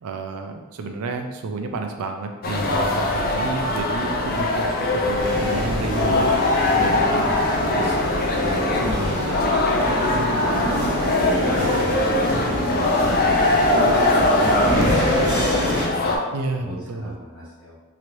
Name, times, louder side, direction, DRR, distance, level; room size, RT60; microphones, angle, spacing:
voice 1, 0.0-6.4 6.8-7.3 7.8-8.0 16.3-17.2, right 3 dB, 90° right, 5 dB, 0.4 m, -30 dB
sound 1, 2.4-16.2, left 2 dB, 45° left, 0.4 m, -22 dB
sound 2, 5.2-15.8, equal, 55° right, 1.3 m, -26 dB
voice 2, 6.5-8.0 8.3-9.4 9.8-10.9 11.1-13.5 14.0-16.1 16.6-17.7, equal, 5° left, -17 dB, 1.1 m, -34 dB
3.0 x 3.0 x 2.6 m, 1.2 s
head